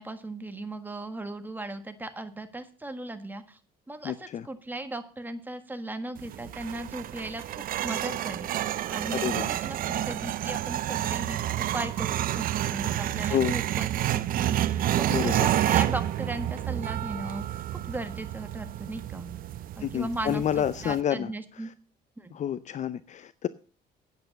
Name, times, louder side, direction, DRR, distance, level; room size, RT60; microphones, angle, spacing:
voice 1, 0.0-3.6 3.9-8.6 8.9-19.3 19.8-21.7 22.2-22.3, right 2 dB, 10° right, 8 dB, 1.5 m, -37 dB
voice 2, 4.0-4.5 9.1-9.5 13.3-13.5 15.1-15.5 19.8-21.7 22.3-23.5, left 10 dB, 45° left, 15 dB, 0.5 m, -29 dB
sound 1, 6.2-21.0, right 12 dB, 55° right, 0.6 m, -29 dB
9.0 x 8.2 x 7.0 m, 0.39 s
cardioid pair, 110°, 17 cm